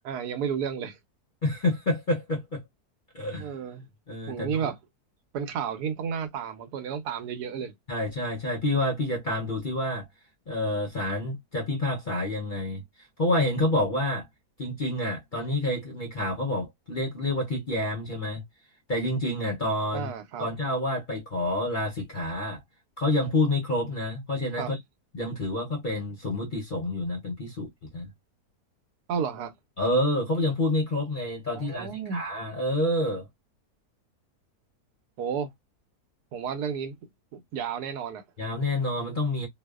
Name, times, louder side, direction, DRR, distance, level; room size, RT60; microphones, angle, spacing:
voice 1, 0.0-1.0 3.4-3.9 4.3-4.8 5.3-7.7 19.9-20.5 24.6-24.7 29.1-29.5 31.5-32.2 35.2-35.5 36.3-37.0 37.3-38.2, right 7 dB, 90° right, 1.2 m, -32 dB
voice 2, 1.4-2.6 3.1-3.6 4.1-4.7 7.9-10.1 10.5-14.3 14.6-18.4 18.9-20.1 20.4-22.6 23.0-24.8 25.1-28.1 29.8-33.3 38.4-39.5, left 1 dB, 50° left, 0.6 m, -28 dB
2.8 x 2.0 x 2.2 m
omnidirectional pair, 1.7 m